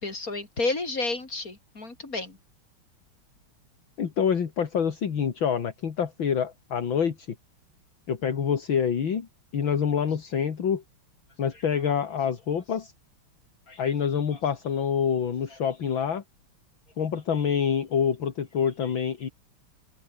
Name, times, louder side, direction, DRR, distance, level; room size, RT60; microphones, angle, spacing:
voice 1, 0.0-2.4 13.7-13.8, left 3 dB, 40° left, 5.3 m, -31 dB
voice 2, 4.0-7.4 8.1-9.3 9.5-10.8 11.4-12.9 13.8-16.2 17.0-19.3, left 7 dB, 65° left, 2.7 m, -26 dB
open air
omnidirectional pair, 2.4 m